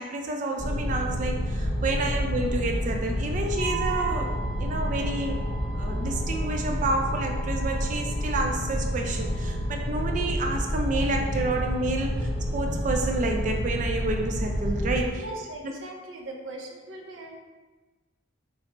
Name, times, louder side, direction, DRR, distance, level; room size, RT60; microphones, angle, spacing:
voice 1, 0.0-4.3 4.6-5.4 5.8-15.2, right 2 dB, 40° right, 3 dB, 0.3 m, -29 dB
sound 1, 0.6-15.1, equal, 80° left, 0.7 m, -29 dB
Wind instrument woodwind instrument, 3.5-9.7, right 7 dB, 45° left, 0.4 m, -40 dB
voice 2, 15.2-17.4, right 2 dB, 80° right, 1 dB, 0.6 m, -40 dB
3.9 x 2.0 x 4.4 m, 1.3 s
head